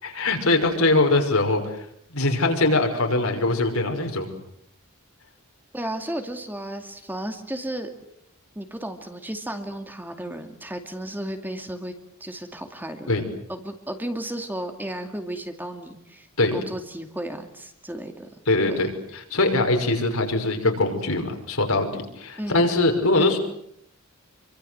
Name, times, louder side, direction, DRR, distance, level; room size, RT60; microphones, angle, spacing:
voice 1, 0.0-4.3 13.1-13.2 16.4-16.6 18.5-23.4, left 2 dB, 70° left, 5 dB, 5.7 m, -22 dB
voice 2, 5.7-7.9 8.6-11.9 12.2-13.1 13.5-18.3 18.7-18.8 22.4-22.7 23.2-23.4, right 1 dB, 10° right, 6 dB, 2.3 m, -34 dB
27.5 x 24.5 x 7.9 m, 0.75 s
head